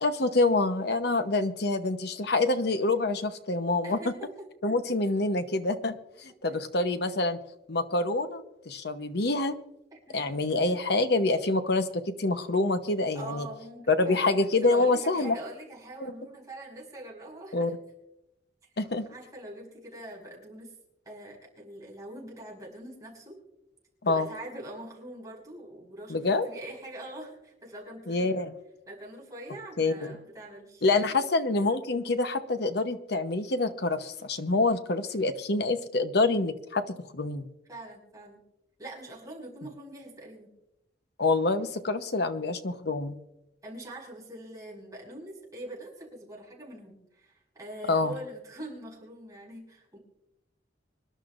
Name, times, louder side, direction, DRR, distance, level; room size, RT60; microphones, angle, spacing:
voice 1, 0.0-4.0 4.6-7.4 7.7-9.6 10.1-13.5 13.9-15.4 16.0-16.1 17.5-17.7 18.8-19.1 24.0-24.3 26.1-26.5 28.1-28.5 29.8-30.2 30.8-37.5 41.2-43.1 47.9-48.2, left 2 dB, 60° left, 9 dB, 1.0 m, -26 dB
voice 2, 3.8-4.3 6.5-6.6 9.9-10.2 13.1-14.3 14.6-17.7 19.1-20.7 21.1-23.4 24.0-28.4 28.9-31.2 37.7-38.4 38.8-40.5 43.6-50.0, right 1 dB, 20° right, -3 dB, 5.5 m, -43 dB
25.5 x 11.5 x 2.6 m, 0.90 s
head